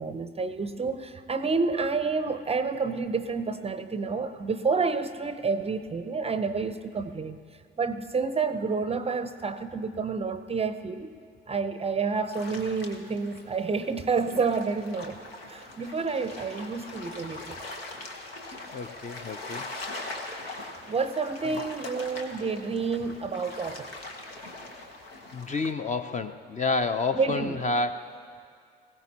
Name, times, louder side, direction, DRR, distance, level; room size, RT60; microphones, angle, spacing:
voice 1, 0.0-7.4 7.8-11.2 11.5-15.2 15.5-17.6 20.9-23.9 27.1-27.6, right 4 dB, 20° right, 11 dB, 0.6 m, -29 dB
sound 1, 12.3-25.7, left 2 dB, 80° left, 1.1 m, -41 dB
voice 2, 18.7-19.7 21.4-21.6 25.3-28.1, left 3 dB, 25° left, 9 dB, 0.6 m, -29 dB
20.5 x 16.0 x 2.9 m, 2.4 s
figure-of-eight pair, 50°, 30 cm